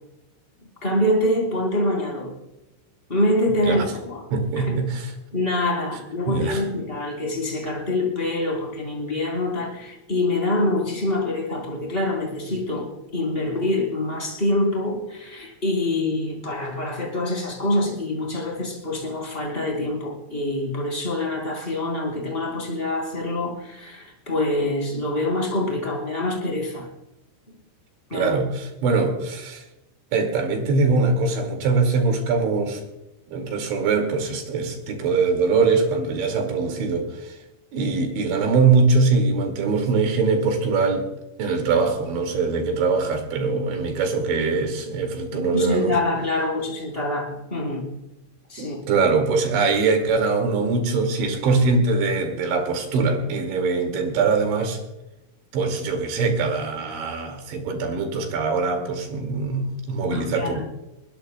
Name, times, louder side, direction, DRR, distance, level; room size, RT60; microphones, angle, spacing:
voice 1, 0.8-2.3 3.1-4.3 4.5-4.8 5.3-26.9 27.5-27.6 28.1-28.4 28.8-28.9 45.3-47.9 48.5-48.8 60.1-60.7, left 1 dB, 15° left, -1 dB, 3.3 m, -25 dB
voice 2, 4.3-5.0 6.3-6.6 28.1-29.6 30.1-32.8 33.3-37.4 37.7-41.1 41.4-46.0 48.6-54.8 55.5-60.7, right 4 dB, 70° right, 4 dB, 4.3 m, -22 dB
22.0 x 20.5 x 2.2 m, 0.95 s
omnidirectional pair, 5.8 m